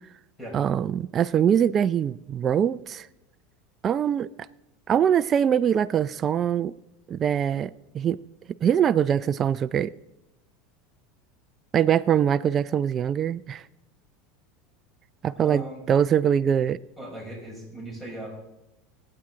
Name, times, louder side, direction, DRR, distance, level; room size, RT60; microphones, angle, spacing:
voice 1, 0.5-3.1 3.8-4.3 4.9-6.7 7.1-8.2 8.6-9.9 11.7-13.6 15.2-16.8, right 9 dB, 35° right, 0.4 m, -23 dB
voice 2, 15.4-15.8 17.0-18.3, right 1 dB, 5° left, 6.1 m, -38 dB
24.0 x 8.8 x 3.9 m
supercardioid pair, 115°, 0 cm